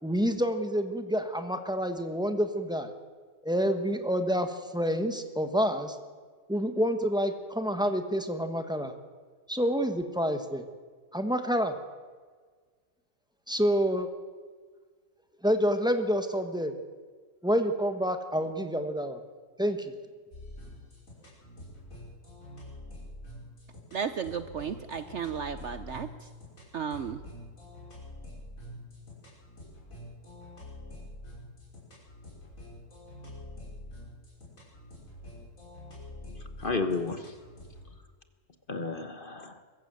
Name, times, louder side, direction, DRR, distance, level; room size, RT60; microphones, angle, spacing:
voice 1, 0.0-2.9 3.4-6.0 6.5-8.9 9.5-10.6 11.1-11.7 13.5-14.1 15.4-16.7 17.4-19.2 19.6-19.9, equal, 5° right, 7 dB, 1.3 m, -28 dB
sound 1, 20.3-37.9, left 1 dB, 60° left, 6.4 m, -46 dB
voice 2, 23.9-26.1 26.7-27.2, right 7 dB, 55° right, 11 dB, 0.9 m, -34 dB
voice 3, 36.4-37.4 38.7-39.6, left 3 dB, 35° left, 8 dB, 1.3 m, -32 dB
22.5 x 15.0 x 7.8 m, 1.5 s
omnidirectional pair, 1.6 m